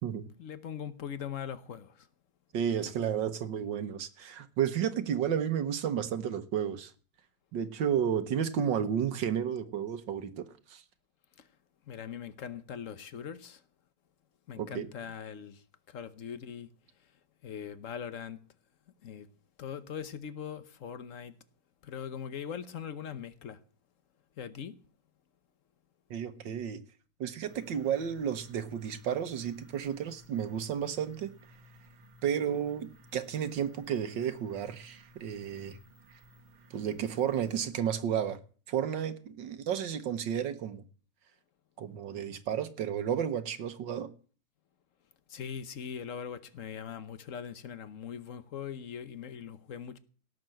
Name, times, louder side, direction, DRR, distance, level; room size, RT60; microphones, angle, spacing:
voice 1, 0.4-2.1 11.4-11.5 11.9-13.6 14.5-16.7 17.4-18.4 19.0-19.3 19.6-21.3 21.8-23.6 24.4-24.7 45.3-50.0, left 8 dB, 55° left, 1.0 m, -41 dB
voice 2, 2.5-6.9 7.5-10.8 14.6-14.9 26.1-26.8 27.2-31.3 32.2-35.8 36.1-36.2 36.7-38.4 38.7-40.8 41.8-44.1, right 8 dB, 65° right, 1.6 m, -32 dB
sound 1, 27.5-37.7, equal, 85° right, 2.0 m, -57 dB
17.5 x 6.6 x 7.7 m
omnidirectional pair, 2.2 m